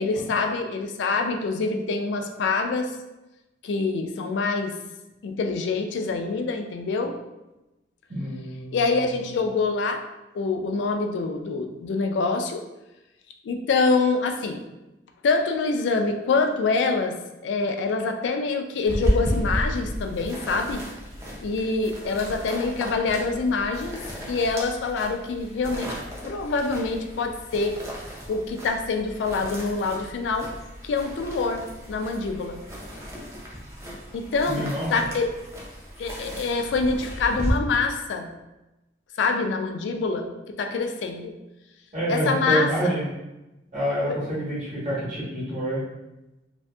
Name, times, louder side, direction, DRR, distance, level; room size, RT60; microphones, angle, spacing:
voice 1, 0.0-2.9 3.6-4.7 5.2-7.1 8.7-10.0 10.3-12.6 13.5-14.6 15.2-17.2 17.4-20.8 21.4-24.0 24.3-25.9 26.2-27.7 28.3-30.5 30.8-32.6 34.1-35.3 36.0-38.3 39.2-41.3 42.1-42.9 44.1-44.2, left 4 dB, 75° left, 4 dB, 0.3 m, -25 dB
voice 2, 8.1-9.3 34.4-34.9 41.9-43.1 43.7-45.8, equal, 40° right, -7 dB, 1.1 m, -27 dB
sound 1, 18.9-37.5, equal, 15° right, 0.4 m, -34 dB
2.6 x 2.5 x 2.2 m, 0.99 s
head